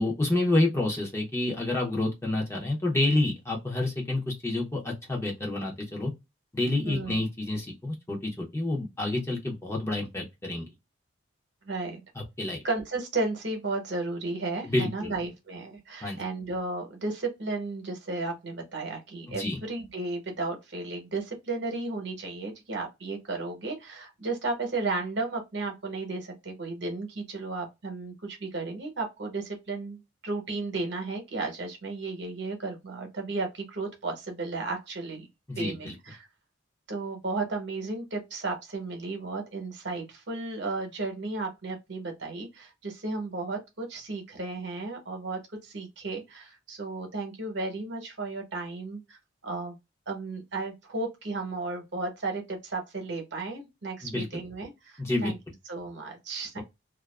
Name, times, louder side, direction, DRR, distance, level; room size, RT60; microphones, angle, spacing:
voice 1, 0.0-6.1 6.5-10.7 12.2-12.6 14.6-15.1 16.0-16.2 19.3-19.6 35.5-35.9 54.0-54.3 55.0-55.3 56.6-56.7, left 2 dB, 15° left, 0.6 m, -28 dB
voice 2, 6.8-7.2 11.6-12.0 12.6-35.3 35.5-36.3 36.9-49.2 49.4-49.8 50.1-55.4 55.7-56.6, right 3 dB, 60° right, 0.9 m, -34 dB
2.4 x 2.3 x 2.2 m
head